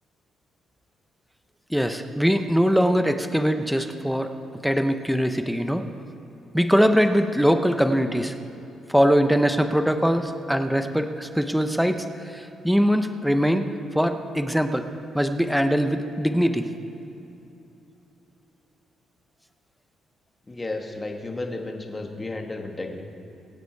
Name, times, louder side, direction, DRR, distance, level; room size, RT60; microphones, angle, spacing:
voice 1, 1.7-4.3 4.6-5.8 6.5-8.3 8.9-12.1 12.3-13.7 13.9-14.8 15.1-16.7, equal, ahead, 7 dB, 0.8 m, -22 dB
voice 2, 20.5-23.0, left 2 dB, 20° left, 2 dB, 1.8 m, -33 dB
23.0 x 8.3 x 4.7 m, 3.0 s
cardioid pair, 90°, 0 cm